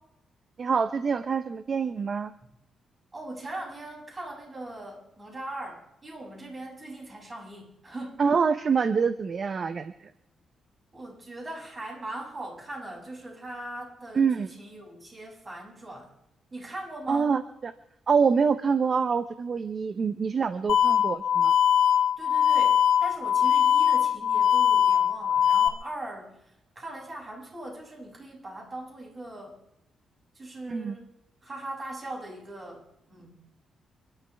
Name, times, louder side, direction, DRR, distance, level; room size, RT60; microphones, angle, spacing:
voice 1, 0.6-2.3 8.2-9.9 14.1-14.5 17.1-17.7 18.1-21.5 30.7-31.0, right 5 dB, 45° right, 11 dB, 0.7 m, -25 dB
voice 2, 3.1-8.2 10.9-16.1 16.5-17.3 22.2-26.4 26.8-29.6 30.3-31.1 31.4-32.8 33.1-33.4, right 1 dB, 25° right, -2 dB, 7.3 m, -40 dB
sound 1, 20.7-25.7, left 9 dB, 75° left, 1.4 m, -21 dB
29.5 x 12.5 x 3.5 m, 0.85 s
cardioid pair, 115°, 0 cm